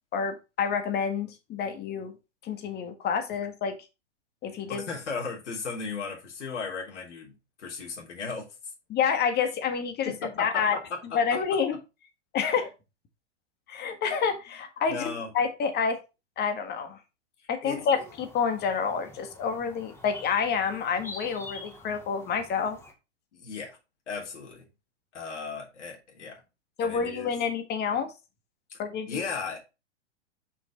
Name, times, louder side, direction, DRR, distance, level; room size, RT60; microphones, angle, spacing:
voice 1, 0.1-2.1 2.4-3.7 4.4-4.8 8.9-10.8 11.1-11.8 12.3-12.7 13.7-16.0 16.4-17.0 17.5-22.8 26.8-28.1 28.8-29.2, left 6 dB, 30° left, 1.7 m, -28 dB
voice 2, 4.7-8.5 10.0-11.4 14.9-15.3 17.6-17.8 23.3-23.8 24.1-24.7 25.1-26.4 26.8-27.3 28.7-28.8 29.1-29.6, left 4 dB, 75° left, 3.3 m, -36 dB
sound 1, 18.0-22.9, left 2 dB, 5° left, 1.5 m, -46 dB
6.0 x 5.6 x 4.0 m
hypercardioid pair, 115°, 36 cm